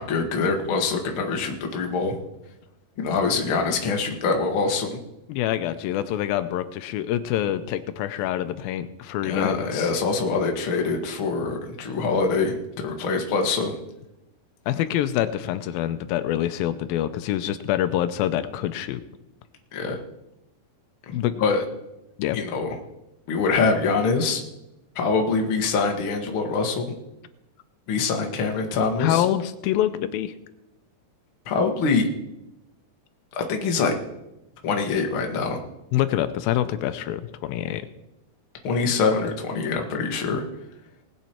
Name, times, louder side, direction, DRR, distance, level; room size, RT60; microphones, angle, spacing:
voice 1, 0.0-2.2 3.0-5.0 9.2-13.8 19.7-20.0 21.1-21.6 22.3-22.7 23.3-24.4 25.0-26.9 27.9-29.2 31.5-32.1 33.3-33.9 34.6-35.6 38.6-40.4, left 4 dB, 50° left, 2 dB, 1.8 m, -24 dB
voice 2, 5.3-9.9 14.7-19.0 21.1-21.3 22.2-22.4 29.0-30.3 35.9-37.9, left 12 dB, 85° left, 12 dB, 2.4 m, -26 dB
19.5 x 8.3 x 4.4 m, 0.92 s
omnidirectional pair, 4.1 m